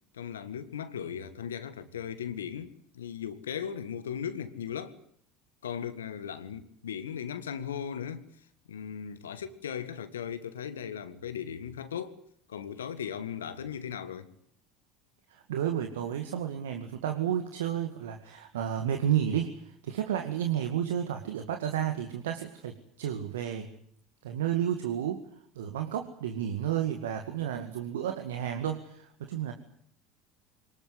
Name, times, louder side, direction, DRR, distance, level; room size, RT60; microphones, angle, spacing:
voice 1, 0.1-5.0 5.6-8.3 8.7-12.2 12.5-14.3, left 8 dB, 80° left, 1.9 m, -37 dB
voice 2, 15.3-23.7 24.2-25.2 25.6-29.5, right 10 dB, 75° right, 2.1 m, -31 dB
24.5 x 20.5 x 9.7 m
hypercardioid pair, 75°, 0 cm